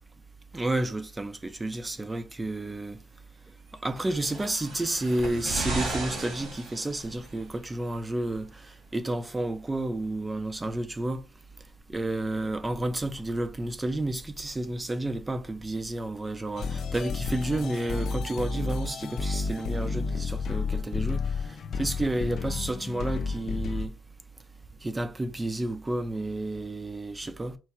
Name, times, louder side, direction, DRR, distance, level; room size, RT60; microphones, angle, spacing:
voice 1, 0.5-3.0 3.8-8.6 8.9-11.2 11.9-21.3 21.8-23.9 24.8-27.6, right 1 dB, 20° right, 0.6 m, -31 dB
sound 1, 4.0-7.4 8.3-8.4, right 3 dB, 65° right, 2.2 m, -35 dB
sound 2, 16.6-23.9, left 4 dB, 60° left, 0.5 m, -31 dB
4.6 x 2.2 x 4.3 m
cardioid pair, 90°, 0 cm